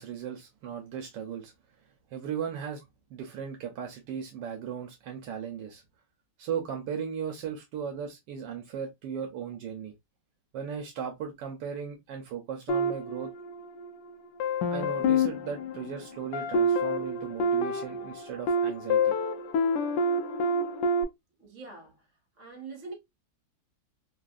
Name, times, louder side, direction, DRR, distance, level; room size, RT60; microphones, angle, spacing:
voice 1, 0.0-1.5 2.1-2.8 3.1-5.8 6.4-9.9 10.5-13.3 14.7-19.2, right 7 dB, 75° right, 1.3 m, -37 dB
sound 1, 12.7-13.9 14.4-21.0, left 1 dB, 80° left, 1.2 m, -28 dB
voice 2, 21.4-22.9, right 4 dB, 45° right, 1.5 m, -44 dB
3.5 x 2.5 x 2.3 m
omnidirectional pair, 2.0 m